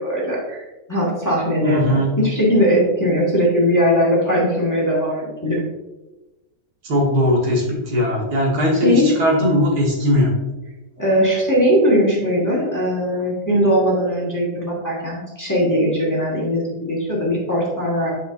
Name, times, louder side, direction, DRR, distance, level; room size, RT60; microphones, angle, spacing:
voice 1, 0.0-5.6 8.8-9.1 11.0-18.1, equal, 10° left, -6 dB, 1.7 m, -19 dB
voice 2, 1.6-2.1 6.8-10.4, left 1 dB, 75° right, -2 dB, 2.1 m, -19 dB
8.7 x 5.2 x 2.6 m, 1.1 s
omnidirectional pair, 1.7 m